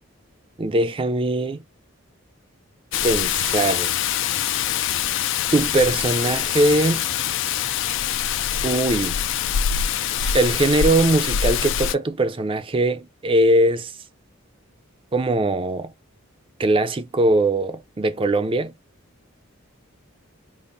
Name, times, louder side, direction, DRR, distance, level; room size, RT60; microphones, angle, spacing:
voice 1, 0.6-1.6 3.0-3.9 5.5-7.0 8.6-9.2 10.2-13.9 15.1-15.9 16.6-18.7, right 2 dB, 25° right, 0.4 m, -21 dB
Rain, 2.9-11.9, left 9 dB, 60° left, 0.4 m, -24 dB
5.2 x 2.0 x 2.5 m
head